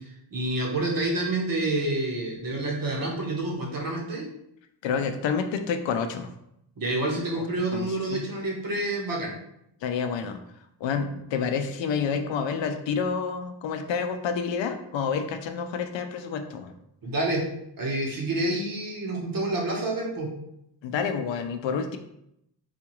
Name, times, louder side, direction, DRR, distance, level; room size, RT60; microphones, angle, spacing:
voice 1, 0.0-4.3 6.8-9.3 17.0-17.5 17.8-20.3, right 2 dB, 50° right, -1 dB, 1.0 m, -28 dB
voice 2, 4.8-6.3 7.4-7.5 7.7-8.2 9.8-10.4 10.8-16.7 20.8-22.0, left 6 dB, 80° left, 7 dB, 0.5 m, -29 dB
4.2 x 2.3 x 3.0 m, 0.79 s
cardioid pair, 100°, 44 cm